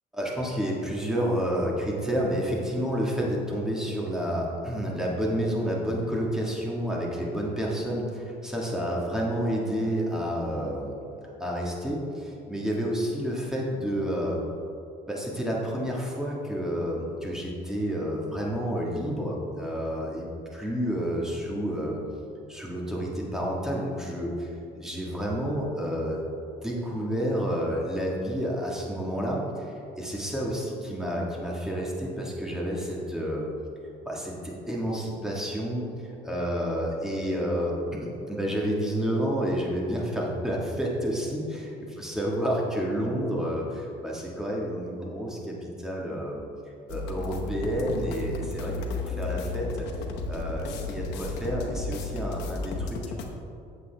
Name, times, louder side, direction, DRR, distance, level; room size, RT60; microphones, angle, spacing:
voice 1, 0.1-11.0 11.4-14.4 15.1-22.0 22.5-24.5 24.7-26.2 26.6-33.5 34.0-46.4 46.9-49.9 50.3-53.0, equal, 5° right, -3 dB, 1.6 m, -30 dB
sound 1, 46.9-53.3, left 3 dB, 85° left, 0.9 m, -33 dB
8.1 x 7.6 x 3.4 m, 2.6 s
cardioid pair, 110°, 17 cm